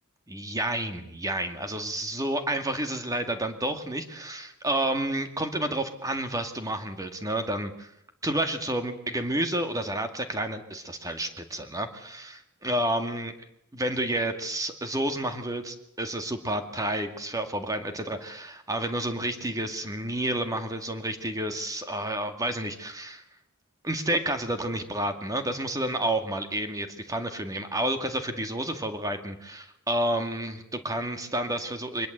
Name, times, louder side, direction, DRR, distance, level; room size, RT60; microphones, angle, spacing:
voice 1, 0.3-7.9 8.2-13.3 13.7-23.2 23.8-32.1, right 1 dB, 15° right, 7 dB, 2.2 m, -30 dB
24.0 x 20.5 x 8.1 m, 0.77 s
head